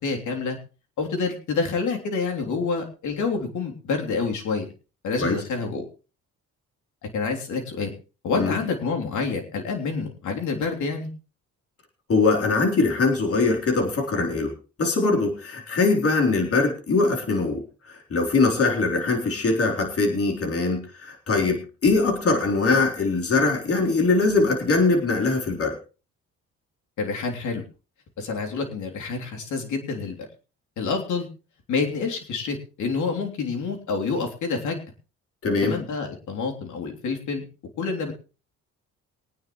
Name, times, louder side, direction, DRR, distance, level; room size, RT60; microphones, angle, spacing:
voice 1, 0.0-0.6 1.0-4.7 5.0-5.8 7.1-7.9 8.2-11.1 27.0-27.6 28.2-30.3 30.8-31.3 31.7-34.8 35.6-37.5 37.8-38.1, left 4 dB, 75° left, 3 dB, 3.4 m, -27 dB
voice 2, 12.1-14.5 14.8-25.7 35.4-35.8, left 3 dB, 50° left, 2 dB, 3.9 m, -22 dB
22.5 x 9.6 x 3.2 m, 0.33 s
cardioid pair, 90°, 30 cm